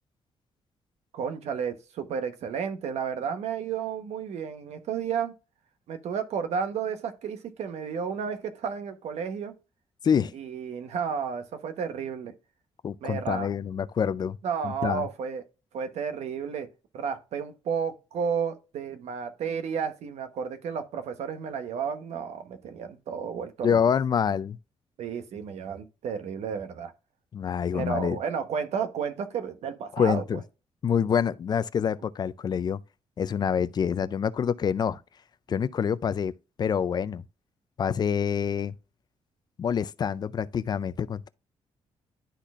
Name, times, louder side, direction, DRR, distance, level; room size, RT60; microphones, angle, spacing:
voice 1, 1.1-5.3 5.9-9.5 10.3-12.3 13.0-13.5 14.4-15.4 15.7-16.7 16.9-23.8 25.0-26.9 27.7-30.2, right 6 dB, 80° right, 1.1 m, -32 dB
voice 2, 12.8-14.4 14.6-15.1 23.6-24.6 27.3-28.2 29.9-30.4 30.8-32.8 33.2-35.0 35.5-36.3 36.6-37.2 37.8-38.7 39.6-41.3, left 7 dB, 40° left, 0.4 m, -26 dB
11.5 x 4.2 x 2.4 m
cardioid pair, 135°, 11 cm